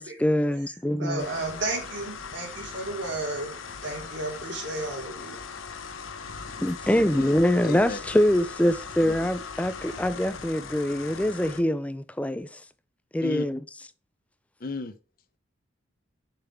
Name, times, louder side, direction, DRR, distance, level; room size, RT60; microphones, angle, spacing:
voice 1, 0.0-1.3 6.6-12.6 13.1-13.6, left 1 dB, 5° left, 0.3 m, -24 dB
voice 2, 1.0-3.5 3.8-5.4, right 2 dB, 65° right, 3.0 m, -33 dB
sound 1, 1.2-11.6, left 5 dB, 85° left, 0.9 m, -39 dB
voice 3, 6.9-8.0 9.1-9.3 13.2-13.5 14.6-15.0, left 3 dB, 45° left, 0.8 m, -35 dB
6.8 x 5.9 x 3.6 m
head